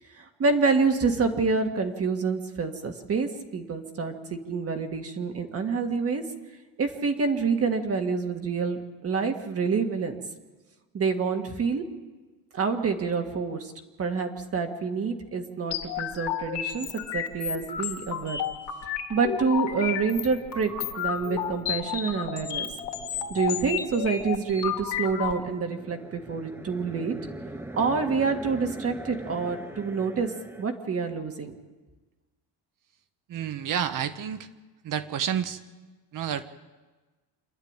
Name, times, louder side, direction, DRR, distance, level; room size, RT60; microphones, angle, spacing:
voice 1, 0.2-6.2 6.8-10.2 10.9-11.8 12.5-13.7 14.0-16.9 17.1-18.4 19.1-22.7 23.3-27.1 27.7-30.3 30.6-31.5, right 4 dB, 35° right, 5 dB, 1.8 m, -27 dB
sound 1, 15.7-25.3, left 9 dB, 65° left, 2.7 m, -32 dB
sound 2, 19.8-30.6, right 1 dB, 5° right, 0.8 m, -43 dB
voice 2, 33.3-34.5 34.8-35.6 36.1-36.4, right 9 dB, 50° right, 11 dB, 1.3 m, -29 dB
27.5 x 11.5 x 8.9 m, 1.2 s
cardioid pair, 155°, 41 cm